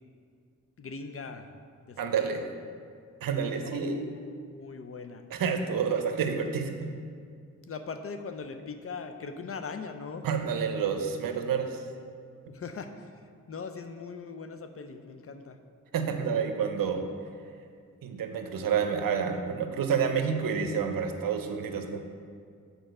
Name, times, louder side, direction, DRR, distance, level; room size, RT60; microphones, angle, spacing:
voice 1, 0.8-1.5 1.8-2.4 3.6-4.1 4.4-5.3 7.7-10.3 12.5-15.6, left 5 dB, 45° left, 7 dB, 0.5 m, -40 dB
voice 2, 2.0-2.4 3.2-4.1 5.3-6.9 10.2-11.9 15.9-17.1 18.0-22.0, right 6 dB, 85° right, 6 dB, 0.8 m, -29 dB
6.5 x 4.5 x 6.4 m, 2.2 s
wide cardioid pair, 110°, 33 cm